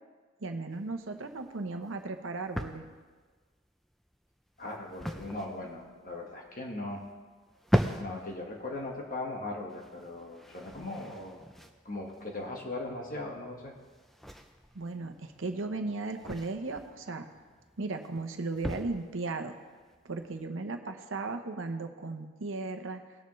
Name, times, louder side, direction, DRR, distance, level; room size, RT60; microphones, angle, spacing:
voice 1, 0.4-2.9 14.7-17.3 17.8-19.5 20.0-23.0, right 3 dB, 75° right, 6 dB, 0.9 m, -36 dB
sound 1, 0.7-20.5, equal, ahead, 0.5 m, -39 dB
voice 2, 4.6-7.0 8.0-11.4 11.8-13.7, left 2 dB, 40° left, 0 dB, 1.5 m, -39 dB
19.0 x 6.8 x 3.2 m, 1.4 s
head